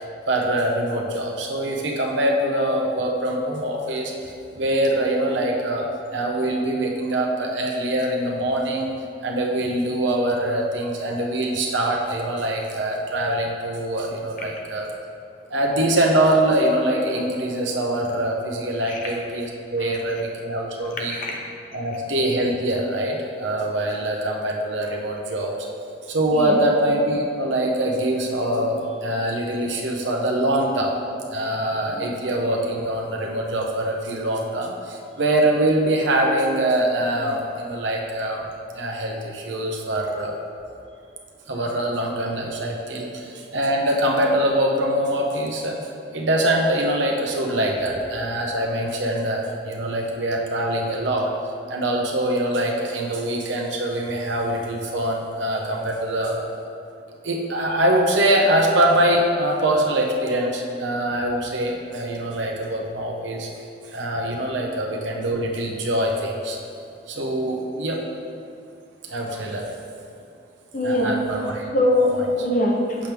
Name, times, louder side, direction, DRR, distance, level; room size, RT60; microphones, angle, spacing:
voice 1, 0.3-8.9 9.2-14.9 15.5-21.2 21.7-25.5 26.1-30.9 31.3-38.5 38.7-40.3 41.5-45.8 46.1-51.3 51.7-56.4 57.2-66.6 67.1-68.0 69.0-69.7 70.8-71.7, right 1 dB, 85° right, 0 dB, 0.9 m, -23 dB
voice 2, 19.8-20.3 20.9-21.4 26.3-26.6 31.9-32.1 70.7-71.2 71.7-73.0, left 1 dB, 45° left, -1 dB, 0.9 m, -23 dB
7.3 x 6.0 x 3.5 m, 2.5 s
head